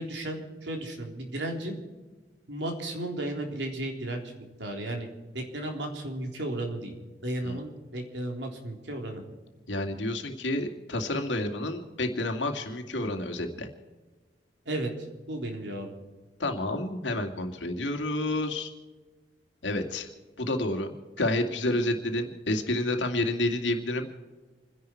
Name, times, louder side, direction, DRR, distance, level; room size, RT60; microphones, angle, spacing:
voice 1, 0.0-1.8 2.5-4.2 4.6-5.1 5.3-7.0 7.2-9.2 14.7-14.9 15.3-15.9, right 1 dB, 75° right, 2 dB, 3.7 m, -34 dB
voice 2, 9.7-13.7 16.4-18.7 19.6-20.1 20.4-24.1, left 1 dB, 90° left, 4 dB, 2.3 m, -29 dB
28.0 x 10.5 x 4.6 m, 1.3 s
head